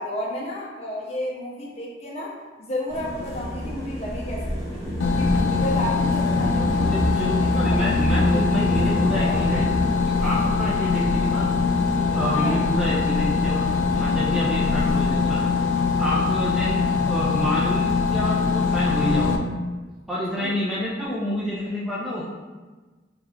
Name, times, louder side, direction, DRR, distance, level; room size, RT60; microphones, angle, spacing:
voice 1, 0.0-2.3 2.6-4.8 5.1-9.4 12.3-12.6 20.3-20.5, left 1 dB, 35° left, -5 dB, 0.6 m, -32 dB
sound 1, 2.9-15.4, equal, 20° left, 1.0 m, -29 dB
sound 2, 5.0-19.4, left 5 dB, 90° left, 0.3 m, -23 dB
voice 2, 6.8-9.7 10.0-11.5 12.1-13.6 13.9-15.4 16.0-19.4 20.1-22.2, equal, 5° right, -7 dB, 0.4 m, -28 dB
2.7 x 2.4 x 3.3 m, 1.3 s
head